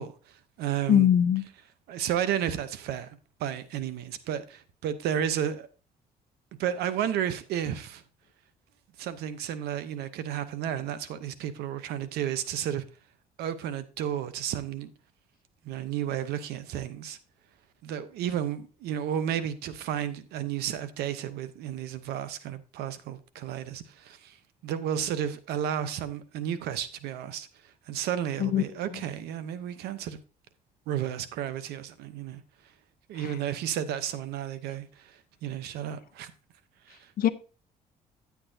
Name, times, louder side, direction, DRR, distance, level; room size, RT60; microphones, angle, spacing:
voice 1, 0.0-1.1 1.9-5.7 6.6-8.0 9.0-12.9 13.4-14.9 15.6-17.2 17.8-30.2 30.9-32.4 33.1-36.3 36.9-37.1, right 10 dB, 85° right, 0.8 m, -32 dB
voice 2, 0.9-1.4 28.4-28.6 37.2-37.3, left 10 dB, 65° left, 0.7 m, -21 dB
9.8 x 8.3 x 2.7 m
supercardioid pair, 70°, 16 cm